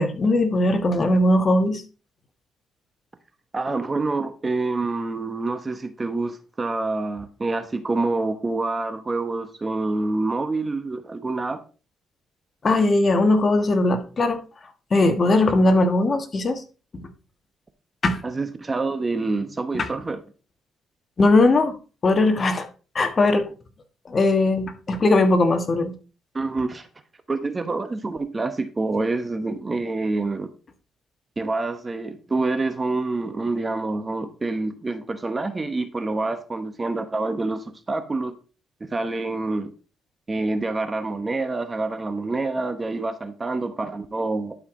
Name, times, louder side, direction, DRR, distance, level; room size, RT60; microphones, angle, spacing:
voice 1, 0.0-1.8 12.6-14.4 14.9-16.6 17.0-17.1 18.0-18.2 19.7-19.9 21.2-21.8 22.0-22.7 22.9-23.5 24.1-25.9, left 2 dB, 40° left, 1.4 m, -19 dB
voice 2, 3.5-11.6 18.2-20.2 26.3-26.9 27.3-30.5 31.4-38.3 38.8-39.7 40.3-44.6, right 3 dB, 25° right, 1.0 m, -27 dB
11.5 x 4.9 x 3.7 m
cardioid pair, 90°, 0 cm